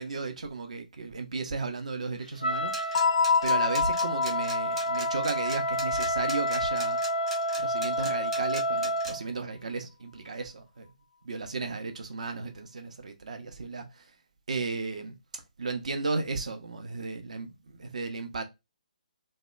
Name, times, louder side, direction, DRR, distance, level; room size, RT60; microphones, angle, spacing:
voice 1, 0.0-7.1 7.6-10.9 11.2-14.0 14.5-15.1 15.6-18.4, right 4 dB, 60° right, 0.6 m, -35 dB
Wind instrument woodwind instrument, 2.4-9.2, equal, 85° left, 0.6 m, -30 dB
sound 1, 2.7-9.1, right 1 dB, 5° right, 0.5 m, -40 dB
sound 2, 2.9-7.6, left 5 dB, 45° left, 0.4 m, -29 dB
2.7 x 2.1 x 2.4 m
figure-of-eight pair, 140°, 4 cm